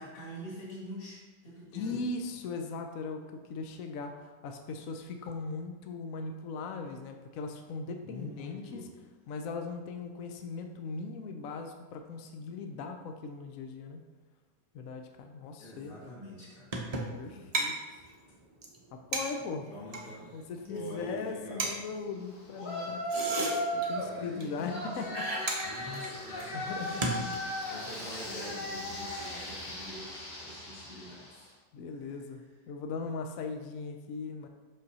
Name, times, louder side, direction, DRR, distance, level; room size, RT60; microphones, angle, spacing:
voice 1, 0.0-2.0 8.0-8.9 15.6-16.7 17.3-17.7 19.7-20.3 20.6-21.8 23.9-25.0 25.6-27.3 27.7-31.5 31.9-32.0, equal, 30° left, -8 dB, 2.1 m, -45 dB
voice 2, 1.7-8.9 9.3-14.0 14.7-16.0 17.2-17.7 18.9-19.7 20.3-23.5 23.7-25.3 25.7-25.8 26.5-27.0 31.7-34.5, left 4 dB, 65° left, 5 dB, 0.9 m, -39 dB
sound 1, 16.7-17.2 17.5-17.7 18.0-18.1 18.3-18.4 18.6-18.8 19.1-20.1 20.6-20.9 21.2-21.3 21.6-21.7 22.9-24.1 24.4-24.5 24.7-24.9 25.1-27.7, right 2 dB, 40° right, 0.5 m, -34 dB
Yell, 22.6-24.1 24.7-31.4, equal, 85° left, 2.3 m, -37 dB
6.0 x 5.3 x 4.2 m, 1.3 s
omnidirectional pair, 1.9 m